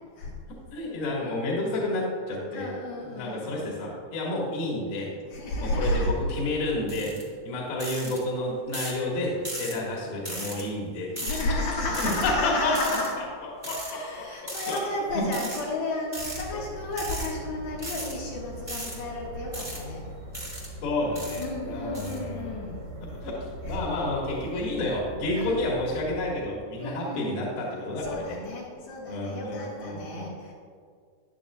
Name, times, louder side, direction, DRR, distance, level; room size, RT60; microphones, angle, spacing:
voice 1, 0.7-2.7 3.1-5.1 5.6-7.2 7.5-11.4 11.9-13.0 13.6-14.8 15.1-15.3 20.8-22.6 23.0-28.2 29.1-30.3, left 2 dB, 60° left, -3 dB, 3.7 m, -30 dB
voice 2, 2.5-3.8 4.3-4.4 5.3-6.1 11.2-13.2 13.7-20.0 21.4-22.9 23.6-23.9 25.4-25.6 26.8-30.5, left 1 dB, 75° left, -6 dB, 3.7 m, -32 dB
sound 1, 6.9-7.2 7.8-8.2 8.7-9.0 9.4-9.7 10.2-10.6 11.2-11.4 11.9-12.3 12.7-13.1 13.6-13.9 14.5-14.8 15.3-15.6 16.1-16.4 16.9-17.3 17.8-18.1 18.7-19.0 19.5-19.8 20.3-20.7 21.2-21.4 21.9-22.2, right 1 dB, 15° right, 0.7 m, -36 dB
sound 2, 16.2-26.2, right 1 dB, 70° right, 5.0 m, -41 dB
16.5 x 10.5 x 2.5 m, 2.1 s
omnidirectional pair, 5.3 m